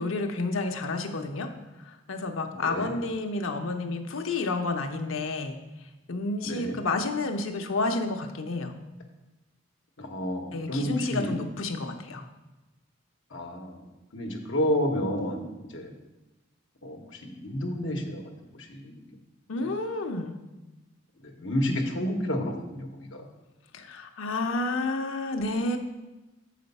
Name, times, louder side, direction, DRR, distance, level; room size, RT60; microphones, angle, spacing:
voice 1, 0.0-1.5 1.8-5.6 6.1-8.7 10.5-12.3 19.5-20.4 23.7-25.8, left 2 dB, 90° left, 5 dB, 0.7 m, -30 dB
voice 2, 2.5-2.9 6.4-6.8 10.0-11.4 13.3-13.9 14.1-15.9 16.8-18.2 18.5-19.2 19.6-19.7 21.2-23.3, equal, 65° left, 2 dB, 1.0 m, -31 dB
7.0 x 5.0 x 5.3 m, 1.1 s
head